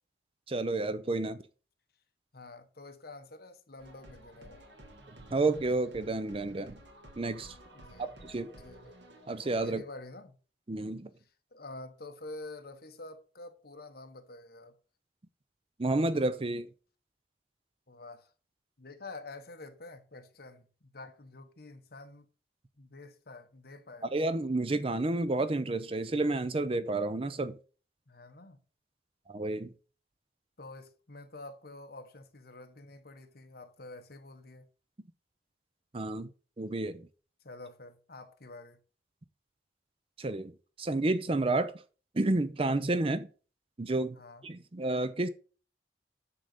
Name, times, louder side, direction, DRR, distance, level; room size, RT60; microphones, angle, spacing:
voice 1, 0.5-1.4 5.3-6.8 7.2-7.5 8.0-8.5 9.3-9.8 10.7-11.1 15.8-16.7 24.1-27.6 29.3-29.7 35.9-36.3 36.6-37.1 40.2-40.5 40.8-41.8 42.1-43.3 43.8-44.2 44.4-45.3, right 2 dB, 30° right, 0.5 m, -30 dB
voice 2, 2.3-4.7 7.7-8.1 8.6-9.0 9.6-10.4 11.5-14.7 17.9-18.3 18.8-22.3 22.8-24.1 28.1-28.6 30.6-34.7 37.4-38.8 44.1-44.4, left 2 dB, 55° left, 1.2 m, -48 dB
sound 1, 3.8-9.8, right 1 dB, 80° right, 2.0 m, -53 dB
9.8 x 3.9 x 6.6 m
head